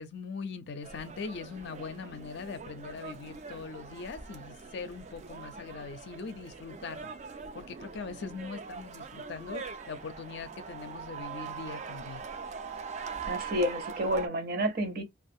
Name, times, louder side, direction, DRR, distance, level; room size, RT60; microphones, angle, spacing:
voice 1, 0.0-7.1 7.5-12.2, left 5 dB, 65° left, 0.5 m, -41 dB
sound 1, 0.8-14.3, right 5 dB, 35° right, 0.4 m, -42 dB
voice 2, 13.3-15.0, equal, 55° right, 0.8 m, -30 dB
2.4 x 2.3 x 2.6 m
head